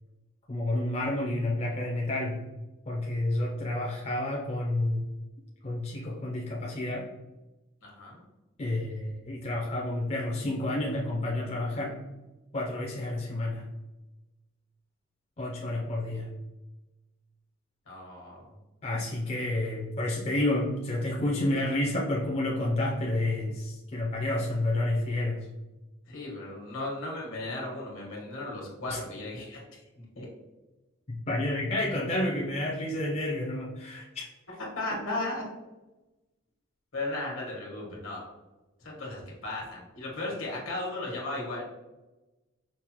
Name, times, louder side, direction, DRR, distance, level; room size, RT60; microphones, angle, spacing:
voice 1, 0.5-2.4 2.9-5.0 5.6-7.1 8.6-12.0 12.5-13.7 15.4-16.3 18.8-25.5 28.9-29.0 31.1-34.2, left 1 dB, 30° left, -2 dB, 0.4 m, -30 dB
voice 2, 7.8-8.2 17.9-18.4 26.1-29.8 30.2-30.3 34.6-35.4 36.9-38.2 38.8-41.6, left 2 dB, 75° left, -2 dB, 1.2 m, -36 dB
5.2 x 2.1 x 2.9 m, 1.1 s
head